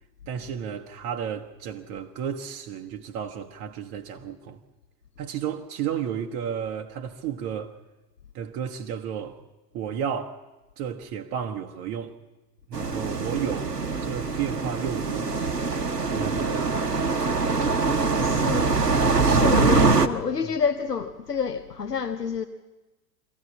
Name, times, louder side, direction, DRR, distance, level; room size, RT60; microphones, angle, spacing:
voice 1, 0.3-4.6 5.2-7.8 8.3-9.4 9.7-10.4 10.8-12.2 12.7-13.7 14.0-15.5 16.1-16.8 18.4-18.9 19.2-19.4 20.4-20.5, right 8 dB, 35° right, 1.1 m, -33 dB
sound 1, 12.7-20.1, right 4 dB, 90° right, 1.0 m, -23 dB
voice 2, 18.2-18.9 19.2-22.5, left 6 dB, 85° left, 1.0 m, -28 dB
23.5 x 15.0 x 7.4 m
figure-of-eight pair, 90°, 46 cm